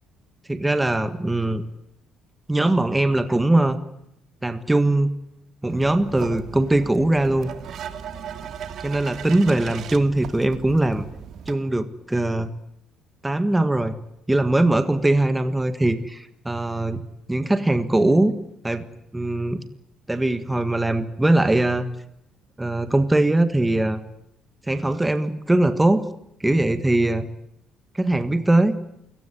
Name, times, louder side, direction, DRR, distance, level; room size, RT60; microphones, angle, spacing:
voice 1, 0.5-1.6 2.5-3.8 4.4-5.1 5.6-7.5 8.8-11.0 11.5-12.5 13.2-14.0 14.3-17.0 17.3-18.4 18.6-18.9 19.1-19.6 20.1-21.9 22.6-24.0 24.7-26.0 26.4-27.3 27.9-28.8, right 2 dB, 10° right, 10 dB, 1.6 m, -21 dB
sound 1, 5.7-11.5, right 8 dB, 50° right, 2.3 m, -37 dB
29.0 x 18.0 x 9.8 m, 0.79 s
cardioid pair, 140°, 0 cm